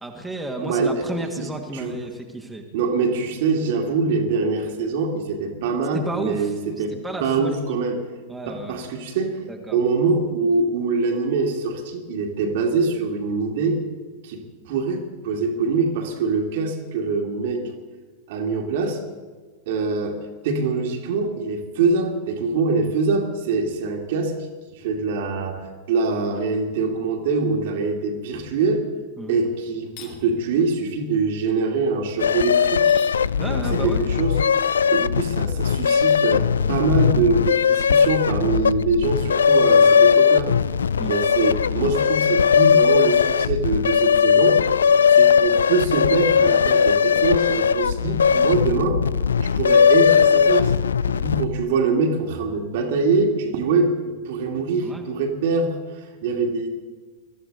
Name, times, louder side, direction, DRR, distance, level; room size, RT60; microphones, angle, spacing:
voice 1, 0.0-2.7 6.1-8.0 8.3-8.8 9.5-9.8 29.2-29.4 33.4-34.1 41.0-41.1 54.8-55.1, right 1 dB, 5° right, 1 dB, 2.0 m, -32 dB
voice 2, 0.6-1.9 2.7-6.9 7.2-7.9 8.5-9.4 9.7-13.8 14.2-17.7 18.3-19.0 19.7-20.2 20.4-24.3 24.8-28.8 29.3-32.9 33.8-34.4 34.9-40.6 41.1-44.6 45.1-49.0 49.4-50.7 51.1-56.7, right 4 dB, 55° right, 3 dB, 2.4 m, -24 dB
sound 1, 29.8-30.2 32.7-33.2 35.9-36.3, left 8 dB, 45° left, 2.4 m, -43 dB
sound 2, 32.2-51.6, left 7 dB, 70° left, 0.3 m, -18 dB
22.5 x 14.0 x 4.0 m, 1.4 s
figure-of-eight pair, 90°, 0 cm